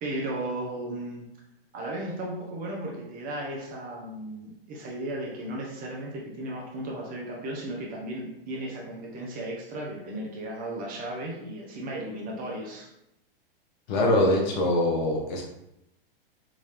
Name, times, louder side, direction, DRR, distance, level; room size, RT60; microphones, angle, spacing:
voice 1, 0.0-1.2 1.7-12.9, right 1 dB, 30° right, -1 dB, 0.8 m, -35 dB
voice 2, 13.9-15.4, left 1 dB, 50° left, 0 dB, 1.1 m, -23 dB
3.7 x 2.6 x 3.2 m, 0.85 s
hypercardioid pair, 120°, 29 cm